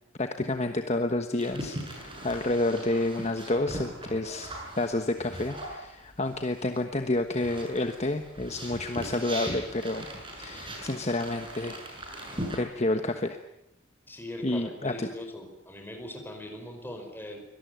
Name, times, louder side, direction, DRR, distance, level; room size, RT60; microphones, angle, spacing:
voice 1, 0.2-4.5 4.8-10.1 10.4-11.8 12.6-13.4 14.4-15.1, left 2 dB, 35° left, 6 dB, 1.3 m, -29 dB
sound 1, 1.4-6.8 7.1-12.6, right 1 dB, 25° right, 7.3 m, -40 dB
voice 2, 14.1-17.4, left 1 dB, 10° left, 4 dB, 5.0 m, -40 dB
24.0 x 18.5 x 9.3 m, 0.87 s
head